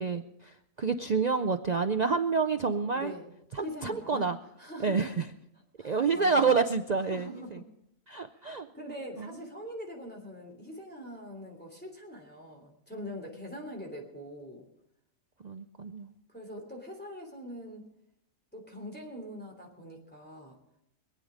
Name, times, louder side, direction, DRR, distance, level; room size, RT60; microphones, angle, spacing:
voice 1, 0.0-3.1 3.5-4.4 4.8-5.3 5.8-7.6 8.1-8.7 9.2-9.4 15.4-16.1, right 5 dB, 65° right, 8 dB, 0.4 m, -28 dB
voice 2, 2.9-3.3 3.6-4.2 4.6-5.1 5.8-6.5 7.1-7.6 8.3-8.5 8.7-14.7 16.3-17.9 18.5-20.6, equal, 5° left, 0 dB, 3.0 m, -43 dB
24.5 x 8.8 x 5.1 m, 0.77 s
omnidirectional pair, 1.5 m